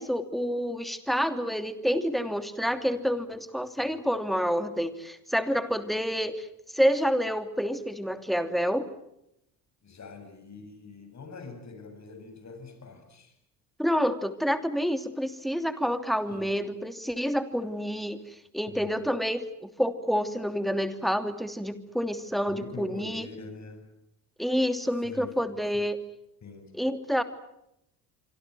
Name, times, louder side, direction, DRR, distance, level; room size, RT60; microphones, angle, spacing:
voice 1, 0.0-8.9 13.8-23.3 24.4-26.0 26.7-27.2, equal, ahead, 9 dB, 2.9 m, -28 dB
voice 2, 9.8-13.3 16.3-16.5 18.7-19.1 22.5-23.9 25.0-25.3 26.4-26.7, left 3 dB, 35° left, 7 dB, 7.6 m, -44 dB
26.5 x 25.0 x 7.8 m, 0.81 s
hypercardioid pair, 60°, 45 cm